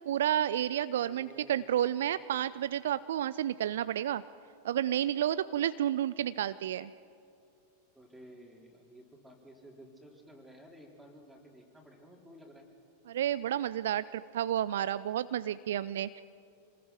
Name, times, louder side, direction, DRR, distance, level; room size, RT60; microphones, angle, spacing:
voice 1, 0.1-4.2 4.6-6.9 13.1-16.2, right 11 dB, 60° right, 16 dB, 0.4 m, -31 dB
voice 2, 1.0-1.8 7.9-12.6, right 1 dB, 5° right, -1 dB, 4.2 m, -54 dB
27.0 x 19.5 x 6.0 m, 2.5 s
figure-of-eight pair, 90°, 0 cm